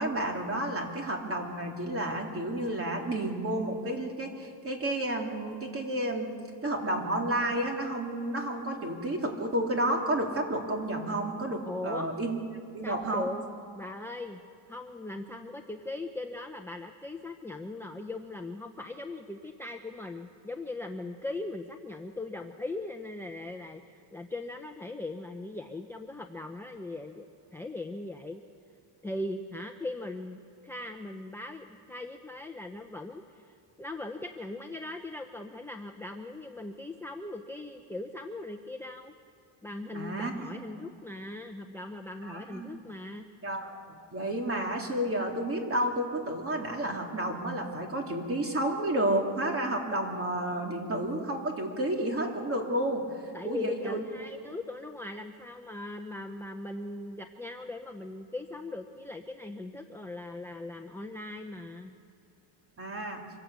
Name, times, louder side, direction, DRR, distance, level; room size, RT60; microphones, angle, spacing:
voice 1, 0.0-6.4 6.6-12.4 12.7-13.3 39.9-40.6 42.2-42.8 43.4-43.8 44.1-53.1 53.4-54.0 62.8-63.2, right 1 dB, 30° right, 2 dB, 3.2 m, -31 dB
voice 2, 11.7-12.1 12.8-13.4 13.7-14.4 14.7-28.4 29.0-39.1 39.6-43.3 53.3-61.9, left 2 dB, 5° left, 3 dB, 0.8 m, -39 dB
25.5 x 17.5 x 8.2 m, 2.5 s
cardioid pair, 135°, 46 cm